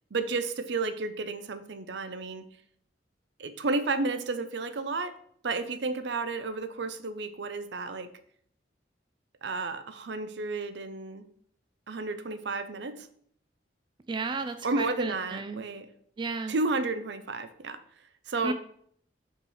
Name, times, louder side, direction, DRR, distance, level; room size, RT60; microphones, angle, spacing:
voice 1, 0.1-2.5 3.4-5.2 5.4-8.1 9.4-11.2 11.9-13.1 14.6-15.9 16.5-17.8 18.3-18.5, right 3 dB, 70° right, 11 dB, 0.6 m, -32 dB
voice 2, 14.1-15.6 16.2-16.5 18.4-18.5, right 3 dB, 25° right, 9 dB, 0.3 m, -33 dB
5.5 x 4.7 x 5.5 m, 0.64 s
head